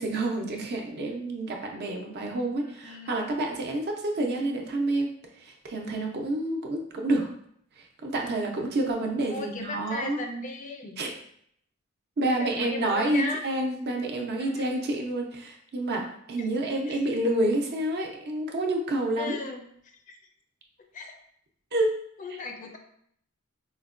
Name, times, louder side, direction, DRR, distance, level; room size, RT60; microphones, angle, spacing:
voice 1, 0.0-5.1 5.4-7.3 8.0-10.2 11.0-11.1 12.2-19.4 21.7-22.0, right 1 dB, 50° right, 1 dB, 0.5 m, -28 dB
voice 2, 2.8-3.2 9.3-10.9 12.4-13.4 14.4-14.6 16.3-16.4 16.9-17.0 19.2-19.6 20.1-20.2 20.9-21.2 22.2-22.8, left 3 dB, 35° left, 4 dB, 0.4 m, -36 dB
4.4 x 2.1 x 2.4 m, 0.68 s
head